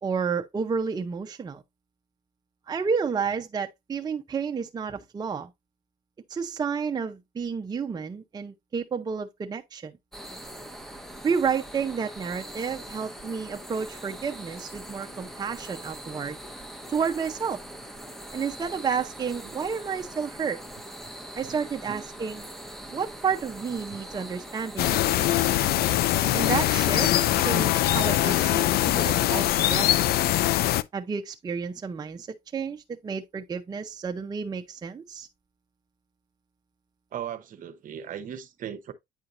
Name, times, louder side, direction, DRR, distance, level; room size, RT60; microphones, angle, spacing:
voice 1, 0.0-1.6 2.7-5.5 6.3-9.9 11.2-16.4 16.9-17.6 18.3-20.6 21.3-22.4 22.9-25.5 26.3-27.1 27.4-30.0 30.9-32.3 32.5-35.3, right 6 dB, 25° right, 0.6 m, -31 dB
sound 1, 10.1-29.5, right 1 dB, ahead, 0.9 m, -42 dB
sound 2, 24.8-30.8, left 14 dB, 65° left, 0.4 m, -22 dB
voice 2, 26.2-26.5 37.1-38.9, right 9 dB, 55° right, 0.9 m, -38 dB
8.9 x 4.5 x 2.5 m
cardioid pair, 110°, 17 cm